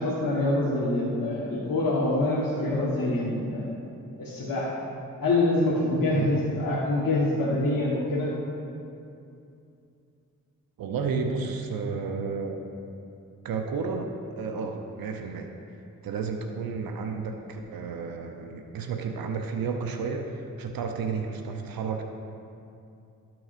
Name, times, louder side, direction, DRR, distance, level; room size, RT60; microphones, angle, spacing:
voice 1, 0.0-3.7 4.2-4.7 5.2-8.3, left 2 dB, 75° left, -7 dB, 1.3 m, -25 dB
voice 2, 10.8-12.6 13.4-14.1 14.4-15.5 16.0-22.0, right 5 dB, 80° right, 3 dB, 0.6 m, -32 dB
12.5 x 5.9 x 2.5 m, 2.6 s
cardioid pair, 40°, 34 cm